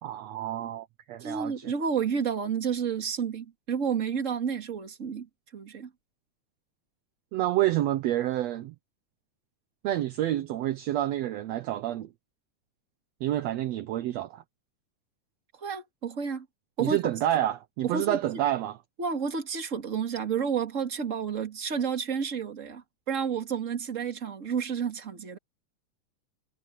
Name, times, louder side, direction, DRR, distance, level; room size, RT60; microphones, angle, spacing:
voice 1, 0.0-1.7 7.3-8.7 9.8-12.1 13.2-14.4 16.8-18.8, right 13 dB, 75° right, 1.7 m, -28 dB
voice 2, 1.2-5.9 15.6-16.5 16.8-17.0 17.8-18.2 19.0-25.4, right 6 dB, 25° right, 2.1 m, -30 dB
omnidirectional pair, 3.6 m